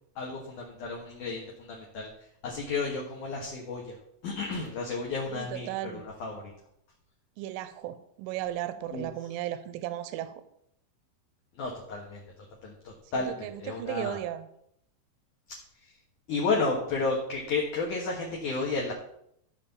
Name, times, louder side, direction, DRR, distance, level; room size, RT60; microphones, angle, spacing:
voice 1, 0.2-2.1 2.4-4.0 4.2-6.5 8.9-9.1 11.6-12.2 12.6-14.2 16.3-18.9, left 3 dB, 60° left, -1 dB, 2.2 m, -32 dB
voice 2, 5.3-6.0 7.4-10.4 13.1-14.5, right 13 dB, 90° right, 12 dB, 3.1 m, -35 dB
14.5 x 4.8 x 7.0 m, 0.72 s
omnidirectional pair, 5.6 m